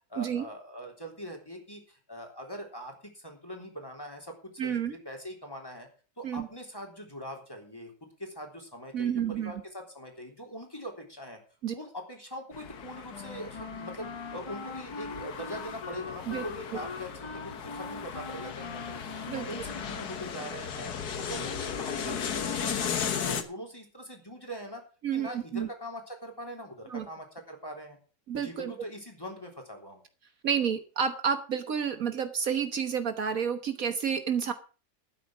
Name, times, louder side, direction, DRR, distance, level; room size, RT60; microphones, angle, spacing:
voice 1, 0.1-4.3 4.6-5.9 6.2-11.4 11.7-19.0 19.3-20.9 21.2-24.8 25.1-28.0 28.3-30.0, equal, 15° left, 2 dB, 3.5 m, -42 dB
voice 2, 4.6-4.9 6.2-6.5 8.9-9.5 11.6-11.7 16.3-16.4 19.3-19.5 25.0-25.7 26.9-27.0 28.3-28.7 30.4-34.5, right 7 dB, 65° right, 9 dB, 1.6 m, -30 dB
sound 1, 12.5-23.4, left 7 dB, 85° left, 1.8 m, -36 dB
Wind instrument woodwind instrument, 13.1-20.5, left 4 dB, 30° left, 0.5 m, -42 dB
12.5 x 9.3 x 6.1 m, 0.36 s
omnidirectional pair, 1.6 m